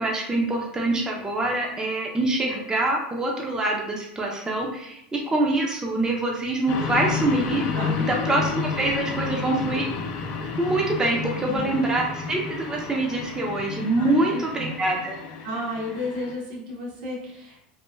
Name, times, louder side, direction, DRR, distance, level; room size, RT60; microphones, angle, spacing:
voice 1, 0.0-7.6 8.1-9.9 10.6-15.2, right 2 dB, 15° right, -1 dB, 0.5 m, -25 dB
sound 1, 6.7-16.3, left 5 dB, 60° left, 0.4 m, -31 dB
voice 2, 14.0-14.7 15.4-17.6, left 1 dB, 80° right, -4 dB, 1.1 m, -32 dB
3.0 x 2.3 x 2.2 m, 0.77 s
hypercardioid pair, 105°, 5 cm